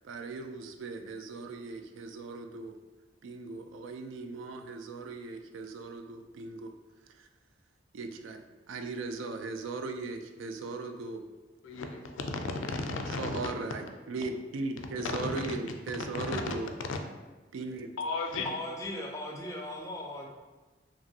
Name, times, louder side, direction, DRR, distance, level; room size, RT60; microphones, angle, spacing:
voice 1, 0.0-2.8 3.2-6.7 7.2-7.3 7.9-11.3 13.2-16.7 17.5-17.9, right 3 dB, 90° right, 6 dB, 0.3 m, -38 dB
voice 2, 11.6-13.3 15.0-15.4 16.1-16.4 16.9-17.0 18.0-18.5, left 3 dB, 85° left, 4 dB, 0.4 m, -34 dB
voice 3, 18.4-20.3, left 1 dB, 15° left, 0 dB, 0.4 m, -38 dB
2.9 x 2.5 x 2.7 m, 1.2 s
head